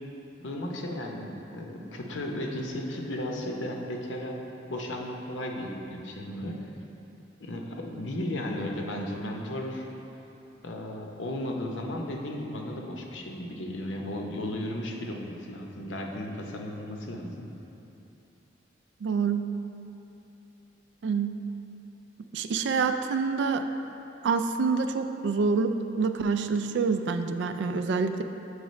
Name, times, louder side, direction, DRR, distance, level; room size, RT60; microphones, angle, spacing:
voice 1, 0.4-4.4 4.7-6.7 7.4-9.9 10.6-17.5, left 1 dB, 80° left, 1 dB, 0.7 m, -35 dB
voice 2, 19.0-19.4 21.0-21.3 22.3-23.6 24.2-28.2, right 5 dB, 65° right, 8 dB, 0.3 m, -27 dB
8.0 x 4.8 x 3.1 m, 2.9 s
head